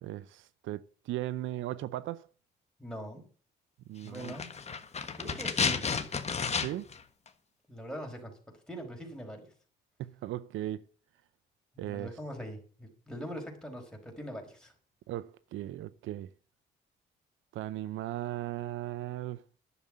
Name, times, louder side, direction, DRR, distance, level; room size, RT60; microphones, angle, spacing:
voice 1, 0.0-2.3 3.9-4.3 6.5-6.9 10.0-10.8 11.8-12.1 15.1-16.3 17.5-19.4, right 14 dB, 85° right, 0.6 m, -37 dB
voice 2, 2.8-3.3 4.0-4.5 5.2-5.9 7.7-9.5 11.7-14.7, equal, 5° left, 4.6 m, -42 dB
sound 1, 4.1-7.0 7.3-7.4, left 5 dB, 35° left, 1.4 m, -32 dB
11.0 x 7.1 x 7.5 m
cardioid pair, 90°, 20 cm